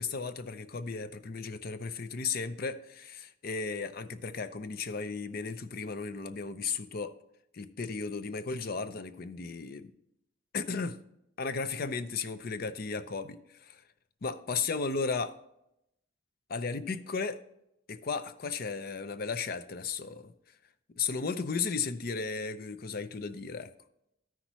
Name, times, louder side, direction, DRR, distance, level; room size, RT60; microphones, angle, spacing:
voice 1, 0.0-7.1 7.5-9.9 10.5-11.0 11.4-13.8 14.2-15.3 16.5-17.4 17.9-20.3 21.0-23.7, left 4 dB, 55° left, 0.6 m, -35 dB
14.0 x 5.8 x 3.0 m
head